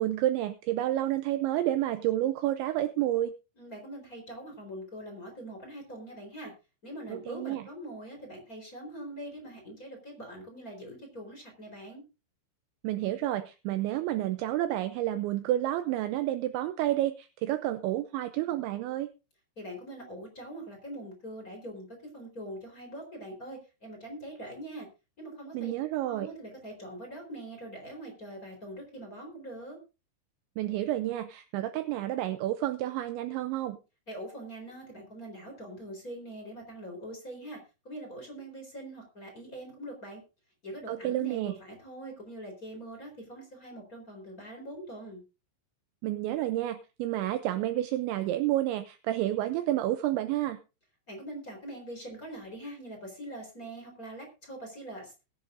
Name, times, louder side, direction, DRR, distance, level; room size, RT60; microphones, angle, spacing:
voice 1, 0.0-3.3 7.1-7.7 12.8-19.1 25.5-26.3 30.6-33.8 40.9-41.5 46.0-50.6, right 14 dB, 80° right, 11 dB, 2.8 m, -30 dB
voice 2, 3.6-6.5 6.8-12.0 19.6-24.9 25.2-25.7 26.1-29.8 34.1-40.2 40.6-45.2 51.1-55.1, right 1 dB, 20° left, 2 dB, 3.9 m, -43 dB
20.5 x 10.5 x 2.6 m, 0.30 s
omnidirectional pair, 5.8 m